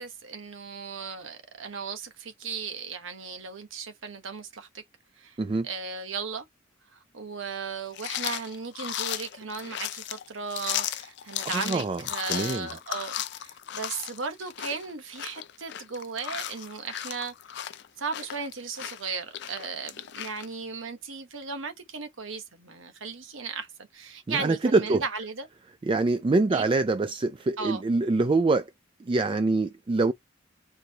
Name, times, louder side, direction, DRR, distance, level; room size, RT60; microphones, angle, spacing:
voice 1, 0.0-4.8 5.2-5.4 5.6-6.4 7.1-13.1 13.4-17.3 18.0-23.7 23.9-25.5 26.5-26.7 27.6-27.8, right 5 dB, 85° right, 1.1 m, -36 dB
sound 1, 7.9-20.5, left 11 dB, 60° left, 0.4 m, -35 dB
voice 2, 11.5-12.0 12.3-12.7 24.3-25.0 25.8-28.7 29.0-30.1, right 3 dB, 25° right, 0.3 m, -24 dB
4.8 x 3.9 x 2.9 m
head